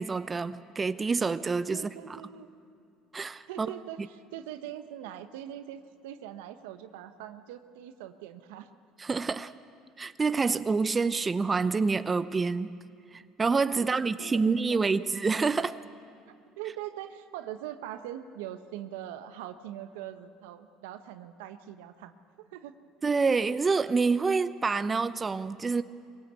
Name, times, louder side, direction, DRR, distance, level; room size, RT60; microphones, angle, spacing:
voice 1, 0.0-1.8 3.1-3.7 9.0-9.5 10.0-12.8 13.1-15.8 23.0-25.8, right 4 dB, 25° right, 0.6 m, -27 dB
voice 2, 1.7-2.5 3.5-8.7 13.7-15.1 16.3-22.7, right 11 dB, 85° right, 1.0 m, -42 dB
23.0 x 17.5 x 8.3 m
supercardioid pair, 80°, 0 cm